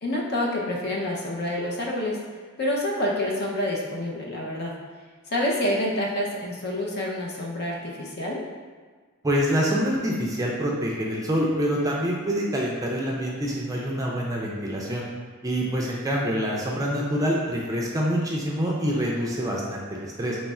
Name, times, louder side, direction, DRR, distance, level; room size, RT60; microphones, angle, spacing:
voice 1, 0.0-2.3 2.6-4.7 5.3-8.4 18.6-18.8, left 1 dB, 50° left, -2 dB, 0.6 m, -28 dB
voice 2, 9.2-15.1 15.4-20.4, equal, 15° right, -3 dB, 0.4 m, -26 dB
3.1 x 2.3 x 4.1 m, 1.5 s
head